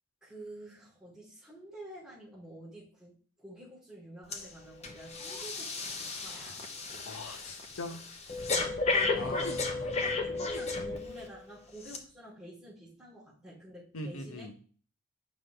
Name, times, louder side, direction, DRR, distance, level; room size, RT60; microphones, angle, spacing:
voice 1, 0.2-3.1 3.4-6.7 8.5-9.4 9.9-14.5, right 1 dB, 5° right, -11 dB, 3.4 m, -49 dB
Breathing, 4.3-4.5 4.8-11.3 11.8-12.0, left 3 dB, 30° left, 0.8 m, -33 dB
voice 2, 7.1-8.0 9.1-10.2 13.9-14.5, left 1 dB, 75° left, 5 dB, 1.1 m, -42 dB
7.5 x 5.4 x 3.4 m, 0.42 s
head